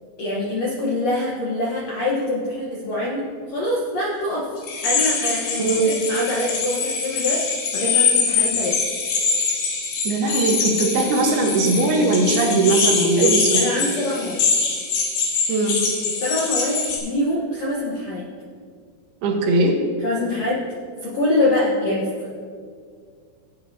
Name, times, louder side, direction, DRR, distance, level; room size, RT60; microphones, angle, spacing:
voice 1, 0.2-4.5 4.8-7.4 7.7-8.8 13.2-14.4 16.2-18.2 20.0-20.6 21.0-22.4, left 1 dB, 70° left, -4 dB, 1.6 m, -24 dB
sound 1, 4.6-17.0, left 5 dB, 90° left, 3.7 m, -23 dB
voice 2, 5.6-5.9 10.0-13.6 15.5-15.8 19.2-19.8, right 3 dB, 80° right, 1 dB, 3.1 m, -19 dB
17.0 x 8.7 x 2.7 m, 2.1 s
omnidirectional pair, 4.5 m